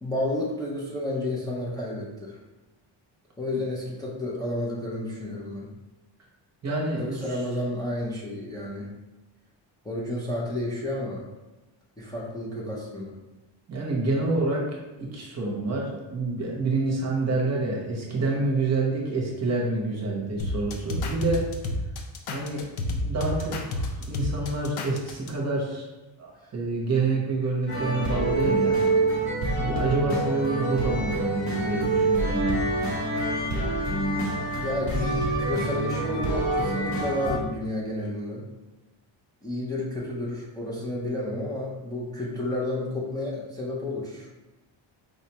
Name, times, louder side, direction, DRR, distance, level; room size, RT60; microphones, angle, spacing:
voice 1, 0.0-2.4 3.4-5.7 7.0-8.9 9.8-11.2 12.0-13.1 26.4-26.5 34.5-38.4 39.4-44.3, left 1 dB, 10° left, -5 dB, 0.3 m, -31 dB
voice 2, 6.6-7.2 13.7-14.6 15.0-21.4 22.3-22.6 23.0-25.9 26.2-28.8 29.5-32.6, right 3 dB, 35° right, -2 dB, 0.7 m, -27 dB
sound 1, 20.4-25.3, left 1 dB, 80° left, 0.6 m, -30 dB
sound 2, 27.7-37.4, right 2 dB, 35° left, 0.8 m, -26 dB
4.9 x 2.1 x 2.8 m, 1.1 s
cardioid pair, 165°, 48 cm